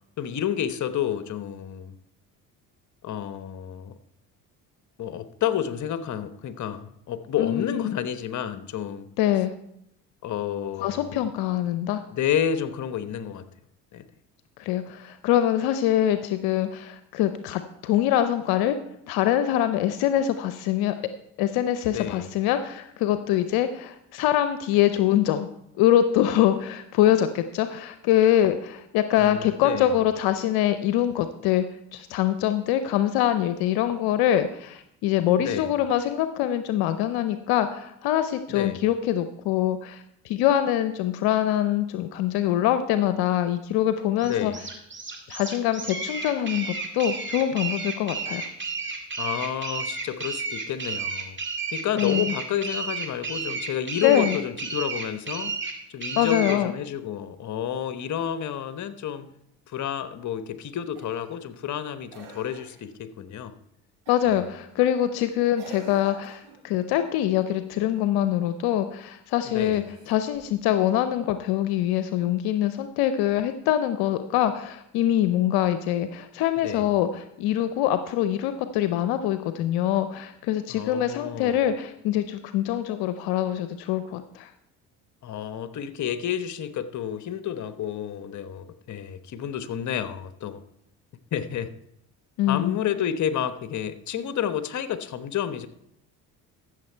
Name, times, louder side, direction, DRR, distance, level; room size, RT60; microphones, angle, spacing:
voice 1, 0.2-2.0 3.0-4.0 5.0-9.1 10.2-11.2 12.1-13.5 13.9-14.0 21.9-22.3 29.2-29.9 35.4-35.7 38.5-38.8 44.2-44.6 49.2-51.4 51.7-55.5 55.9-59.3 59.7-63.5 64.3-64.4 69.4-69.8 76.6-76.9 80.7-81.7 85.2-90.6 91.3-91.7 92.5-95.7, left 9 dB, 50° left, 12 dB, 1.0 m, -30 dB
voice 2, 7.4-7.9 9.2-9.5 10.8-12.0 14.6-18.8 19.1-21.0 21.4-25.5 25.8-31.6 31.9-44.5 45.3-48.5 52.0-52.3 54.0-54.4 56.2-56.7 64.1-84.5 92.4-92.8, left 11 dB, 70° left, 10 dB, 0.7 m, -24 dB
sound 1, 44.2-56.6, right 4 dB, 30° right, 2.2 m, -32 dB
Cough, 60.9-61.3 62.1-62.9 64.1-64.4 65.5-66.6 69.7-70.5 72.0-72.1, right 4 dB, 80° right, 5.4 m, -46 dB
14.5 x 6.8 x 4.5 m, 0.77 s
supercardioid pair, 70°, 39 cm